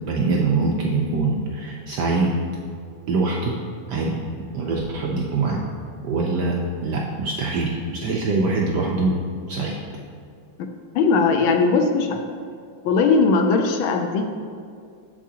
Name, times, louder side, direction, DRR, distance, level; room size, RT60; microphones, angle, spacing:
voice 1, 0.1-2.3 3.1-3.5 3.9-4.2 4.5-5.6 6.0-9.2 9.5-9.8, right 3 dB, 75° right, -1 dB, 1.0 m, -23 dB
voice 2, 10.9-12.2 12.8-14.2, left 4 dB, 75° left, 4 dB, 1.3 m, -19 dB
7.3 x 7.1 x 2.8 m, 2.2 s
omnidirectional pair, 2.3 m